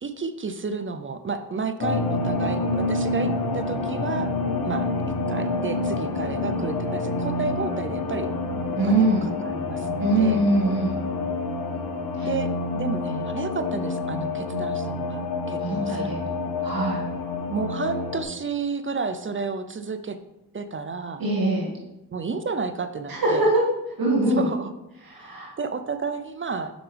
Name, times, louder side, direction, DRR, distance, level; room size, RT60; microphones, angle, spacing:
voice 1, 0.0-4.3 4.6-4.9 5.3-8.3 8.8-10.4 12.2-15.2 15.5-16.1 17.5-20.2 20.5-21.2 22.1-23.4 24.3-24.7 25.6-26.7, right 4 dB, 30° right, 10 dB, 0.5 m, -31 dB
sound 1, 1.8-18.2, left 3 dB, 60° left, 1.2 m, -28 dB
voice 2, 8.8-9.3 10.0-11.0 12.2-12.3 15.6-16.2 16.6-17.0 21.2-21.7 23.1-23.6 24.0-24.4 25.0-25.5, right 1 dB, 60° right, -4 dB, 2.0 m, -22 dB
7.8 x 5.8 x 3.4 m, 0.94 s
cardioid pair, 70°, 39 cm